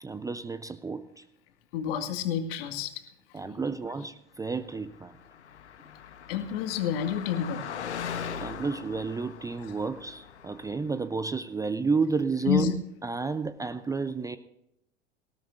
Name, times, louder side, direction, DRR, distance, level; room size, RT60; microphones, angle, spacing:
voice 1, 0.0-1.2 3.3-5.1 8.4-12.7 13.0-14.4, right 4 dB, 10° right, 13 dB, 0.6 m, -31 dB
voice 2, 1.7-2.9 3.4-3.6 6.3-7.6 9.6-9.7 12.5-12.7, left 9 dB, 55° left, 7 dB, 2.2 m, -29 dB
Car passing by, 4.9-10.9, left 7 dB, 75° left, 1.1 m, -40 dB
19.5 x 17.5 x 2.6 m, 0.82 s
figure-of-eight pair, 85°, 34 cm